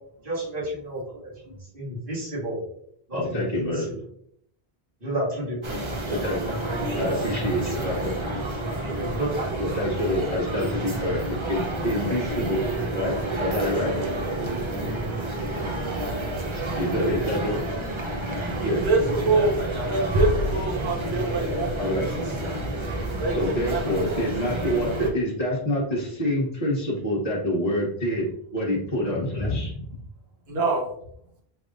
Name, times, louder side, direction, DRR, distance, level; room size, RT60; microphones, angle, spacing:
voice 1, 0.2-1.3 1.7-2.6 3.1-3.7 5.0-6.2 6.7-7.0 7.3-7.9 8.8-9.8, right 1 dB, 55° right, -9 dB, 2.3 m, -32 dB
voice 2, 3.1-4.0 6.1-6.5 7.0-8.1 9.6-12.6 12.9-13.9 16.8-17.8 18.6-18.8 21.8-22.2 23.3-28.3 28.5-29.9, equal, 40° left, -7 dB, 1.1 m, -27 dB
sound 1, 5.6-25.1, right 1 dB, 30° right, 0.7 m, -29 dB
voice 3, 18.6-19.6 19.9-21.7 22.1-22.6 23.2-24.2 29.4-29.5 30.5-30.9, right 2 dB, 70° right, -1 dB, 1.4 m, -26 dB
6.3 x 3.4 x 2.5 m, 0.68 s
omnidirectional pair, 1.1 m